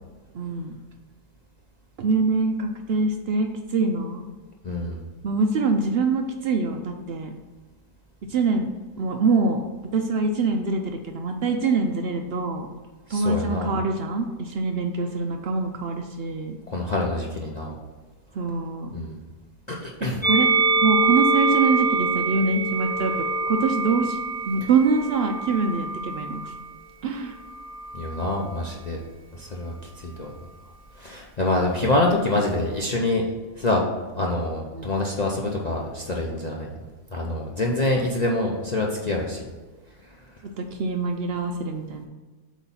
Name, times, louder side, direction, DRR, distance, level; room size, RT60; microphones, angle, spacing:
voice 1, 0.3-0.8 2.0-4.3 5.2-7.3 8.3-8.7 9.0-9.6 9.9-12.7 13.1-16.6 18.3-18.9 20.0-20.5 20.8-23.1 23.5-26.6 27.0-27.4 31.7-31.8 34.7-34.9 40.4-42.0, right 4 dB, 90° right, 4 dB, 0.5 m, -24 dB
voice 2, 4.6-5.0 13.1-13.7 16.7-17.8 18.9-19.2 19.7-20.2 27.9-29.0 29.3-29.7 30.0-30.3 31.0-33.2 33.6-33.9 34.2-36.7 37.1-39.5, left 2 dB, 55° left, -2 dB, 0.4 m, -26 dB
Musical instrument, 20.2-26.6 27.5-28.5, right 3 dB, 5° left, 1.1 m, -25 dB
8.0 x 3.1 x 5.6 m, 1.3 s
omnidirectional pair, 1.7 m